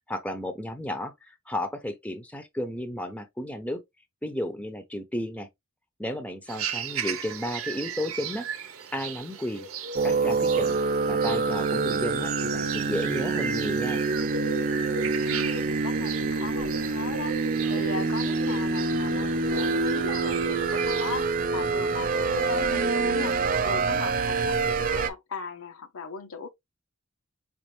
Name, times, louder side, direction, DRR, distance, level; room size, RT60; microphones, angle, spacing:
voice 1, 0.1-3.8 4.2-5.5 6.0-8.5 8.9-9.7 10.0-10.8 11.1-14.0, left 1 dB, 5° left, 0.6 m, -33 dB
sound 1, 6.5-21.3, right 6 dB, 70° right, 0.8 m, -36 dB
sound 2, 9.9-25.1, right 4 dB, 40° right, 0.5 m, -26 dB
voice 2, 15.2-26.5, left 5 dB, 75° left, 0.7 m, -38 dB
5.2 x 2.5 x 3.1 m
head